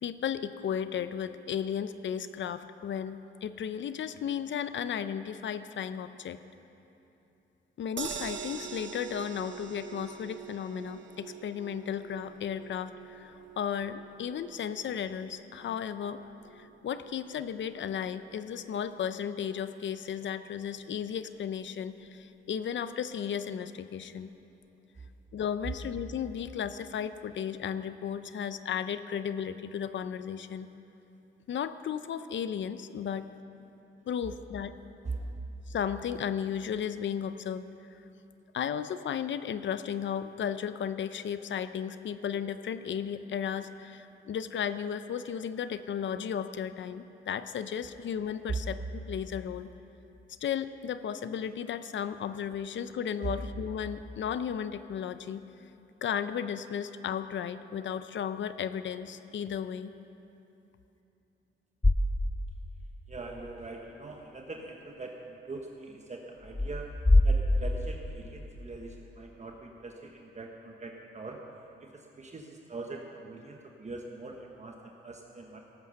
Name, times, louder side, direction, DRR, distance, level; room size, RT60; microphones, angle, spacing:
voice 1, 0.0-6.4 7.8-24.3 25.3-30.7 31.5-33.3 34.1-34.8 35.7-37.6 38.5-49.7 50.4-55.4 56.0-59.9, left 8 dB, 65° left, 12 dB, 0.6 m, -34 dB
sound 1, 8.0-20.2 20.6-20.7 21.0-21.1, right 7 dB, 60° right, 0.9 m, -46 dB
sound 2, 61.8-62.8 63.1-63.2 66.4-68.5, left 1 dB, 10° left, 0.7 m, -25 dB
voice 2, 63.1-71.4 71.8-75.6, right 3 dB, 35° right, 1 dB, 1.2 m, -41 dB
17.0 x 9.2 x 6.5 m, 2.9 s
cardioid pair, 85°, 21 cm